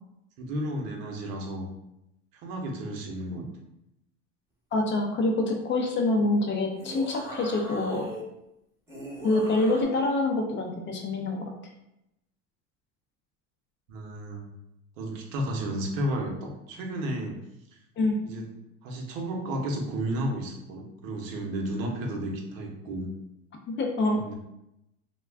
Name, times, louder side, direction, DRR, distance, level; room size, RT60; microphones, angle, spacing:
voice 1, 0.4-1.7 2.4-3.5 13.9-14.5 15.0-17.4 18.2-18.5 18.8-23.1 24.2-24.3, right 1 dB, 80° right, 1 dB, 0.8 m, -32 dB
voice 2, 4.7-8.1 9.2-11.5 18.0-18.2 23.7-24.3, left 2 dB, 30° left, 1 dB, 0.4 m, -26 dB
sound 1, 6.7-8.2 8.9-9.8, equal, 5° right, 0.7 m, -40 dB
2.4 x 2.2 x 3.3 m, 0.86 s
supercardioid pair, 110°, 39 cm